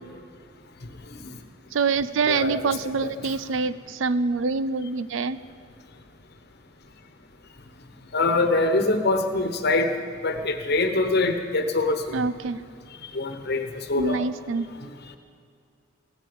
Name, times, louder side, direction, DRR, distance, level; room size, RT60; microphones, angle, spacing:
voice 1, 1.7-5.4 12.1-12.6 14.0-14.7, right 4 dB, 70° right, 15 dB, 0.4 m, -25 dB
voice 2, 8.1-9.9 10.2-12.2 13.1-14.2, left 2 dB, 55° left, 6 dB, 1.1 m, -24 dB
16.0 x 9.7 x 6.9 m, 2.3 s
head